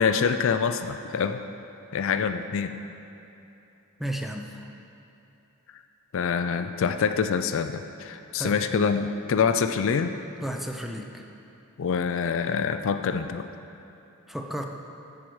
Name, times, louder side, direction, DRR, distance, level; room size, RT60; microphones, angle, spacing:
voice 1, 0.0-1.4 1.9-2.7 6.1-10.2 11.8-13.5, left 6 dB, 60° left, 9 dB, 0.4 m, -25 dB
voice 2, 4.0-4.7 8.4-8.6 10.4-11.3 14.3-14.6, right 1 dB, ahead, 3 dB, 0.5 m, -33 dB
13.0 x 4.6 x 6.3 m, 2.9 s
head